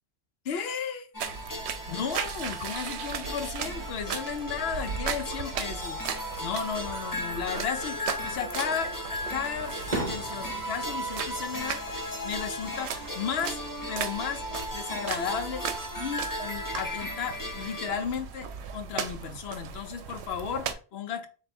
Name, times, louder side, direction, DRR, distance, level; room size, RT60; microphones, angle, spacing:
voice 1, 0.4-1.1 1.9-6.0 6.4-8.9 9.3-13.6 13.9-14.4 14.7-15.6 16.0-21.3, left 7 dB, 70° left, 0.9 m, -34 dB
sound 1, 1.1-17.9, left 1 dB, 20° left, 0.6 m, -36 dB
sound 2, 1.2-20.7, right 7 dB, 75° right, 0.8 m, -37 dB
Fireworks, 8.2-8.8 9.3-12.4 12.7-13.3 14.8-15.6, right 3 dB, 40° right, 0.8 m, -39 dB
3.3 x 2.6 x 4.2 m
omnidirectional pair, 1.1 m